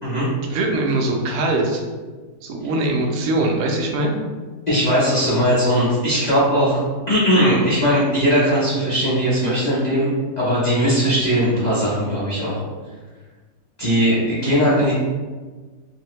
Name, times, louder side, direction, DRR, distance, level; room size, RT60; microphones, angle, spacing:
voice 1, 0.5-1.8 2.4-4.1, right 2 dB, 70° right, 1 dB, 0.6 m, -21 dB
voice 2, 4.7-6.8 7.1-12.6 13.8-14.9, equal, 50° left, -8 dB, 0.5 m, -19 dB
2.7 x 2.7 x 3.0 m, 1.4 s
omnidirectional pair, 1.7 m